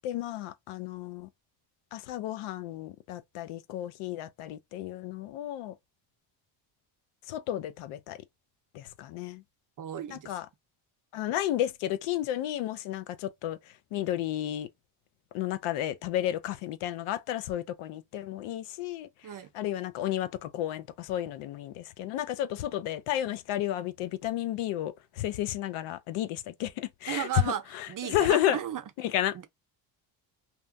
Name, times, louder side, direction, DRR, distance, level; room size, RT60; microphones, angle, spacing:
voice 1, 0.0-1.3 1.9-5.8 7.3-8.2 8.7-9.4 10.1-10.5 11.1-13.6 13.9-14.7 15.3-19.1 19.5-28.6 29.0-29.4, left 12 dB, 90° left, 0.6 m, -32 dB
voice 2, 9.8-10.4 19.2-19.5 27.1-27.6 27.9-28.8 29.3-29.5, right 10 dB, 40° right, 0.6 m, -34 dB
2.9 x 2.2 x 2.5 m
cardioid pair, 75°, 49 cm